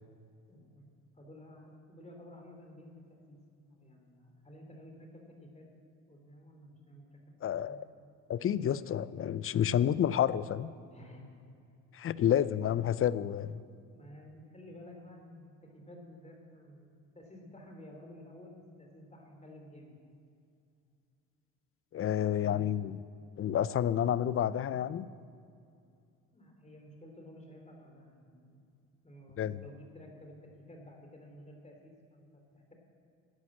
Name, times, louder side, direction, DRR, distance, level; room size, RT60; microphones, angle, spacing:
voice 1, 0.5-0.9 1.1-3.4 3.7-5.7 6.1-7.8 10.9-11.3 13.9-20.0 20.8-20.9 22.4-22.8 26.3-28.7 29.0-32.7, left 1 dB, 20° left, 2 dB, 3.4 m, -53 dB
voice 2, 7.4-7.9 8.3-10.7 11.9-13.6 21.9-23.0 23.4-25.1 29.4-29.6, left 10 dB, 40° left, 17 dB, 0.5 m, -29 dB
11.5 x 9.4 x 7.5 m, 2.5 s
supercardioid pair, 75°, 36 cm